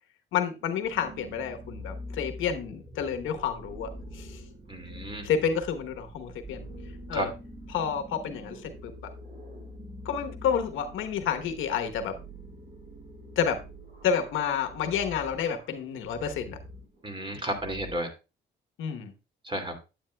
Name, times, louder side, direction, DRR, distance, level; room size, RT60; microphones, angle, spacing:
voice 1, 0.3-4.4 5.2-6.7 7.1-7.3 7.7-8.9 10.0-12.1 13.4-13.6 14.0-16.6 18.8-19.1, left 7 dB, 85° left, 7 dB, 1.1 m, -29 dB
sound 1, 0.6-18.0, equal, 40° right, 4.5 m, -45 dB
voice 2, 4.7-5.3 7.1-7.3 17.0-18.1 19.4-19.7, right 1 dB, 25° right, 4 dB, 2.6 m, -32 dB
10.0 x 8.6 x 2.3 m, 0.28 s
cardioid pair, 90°, 20 cm